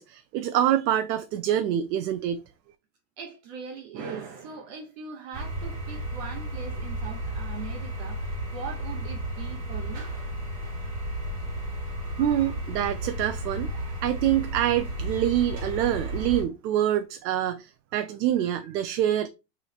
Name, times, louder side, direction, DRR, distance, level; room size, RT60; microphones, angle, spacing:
voice 1, 0.0-2.4 12.0-19.3, right 11 dB, 85° right, 0.5 m, -26 dB
voice 2, 3.2-10.1 18.4-18.6 18.9-19.0, right 5 dB, 45° right, 1.0 m, -40 dB
sound 1, 5.3-16.4, right 1 dB, 30° right, 2.1 m, -33 dB
3.2 x 3.1 x 3.9 m
supercardioid pair, 140°, 49 cm